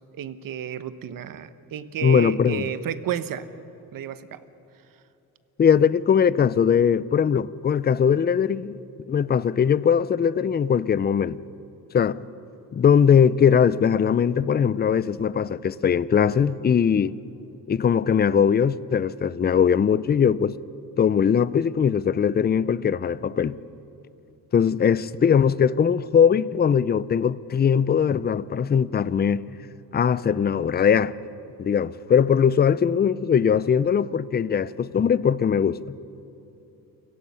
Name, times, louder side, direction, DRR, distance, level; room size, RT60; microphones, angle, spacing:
voice 1, 0.1-3.5 3.9-4.4, right 9 dB, 65° right, 1.1 m, -31 dB
voice 2, 2.0-2.7 5.6-8.8 9.1-11.4 11.9-12.2 12.7-17.1 17.7-20.6 21.0-23.6 24.5-29.4 29.9-31.1 31.6-35.8, left 7 dB, 25° left, 0.5 m, -20 dB
29.0 x 17.5 x 5.6 m
cardioid pair, 95°, 37 cm